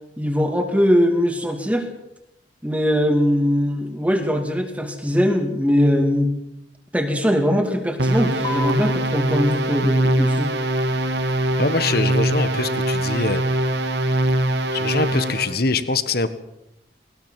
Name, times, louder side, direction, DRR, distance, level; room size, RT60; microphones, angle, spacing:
voice 1, 0.2-1.9 2.6-6.3 6.9-10.5, equal, 10° right, 4 dB, 2.4 m, -21 dB
sound 1, 8.0-15.6, right 1 dB, 70° right, 2.3 m, -22 dB
sound 2, 8.4-15.4, left 3 dB, 25° left, 1.9 m, -40 dB
voice 2, 11.6-13.4 14.7-16.3, left 3 dB, 55° left, 13 dB, 1.5 m, -23 dB
20.0 x 19.5 x 7.6 m, 0.81 s
head